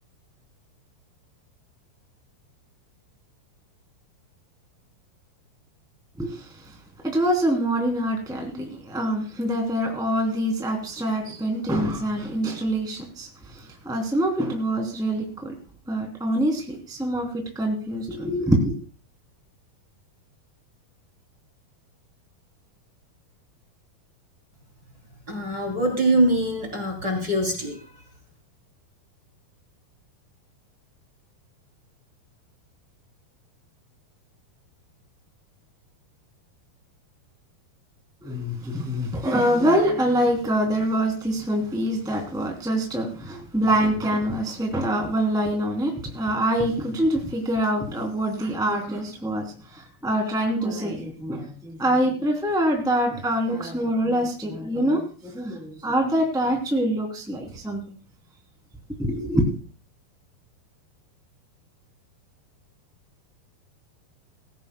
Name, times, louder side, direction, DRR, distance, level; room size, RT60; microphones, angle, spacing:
voice 1, 6.2-6.8 7.0-15.5 15.9-18.8 38.2-57.8 59.0-59.5, right 1 dB, ahead, 2 dB, 2.6 m, -25 dB
voice 2, 25.3-27.8, right 1 dB, 25° right, 2 dB, 3.6 m, -23 dB
20.5 x 16.5 x 2.3 m, 0.38 s
omnidirectional pair, 4.5 m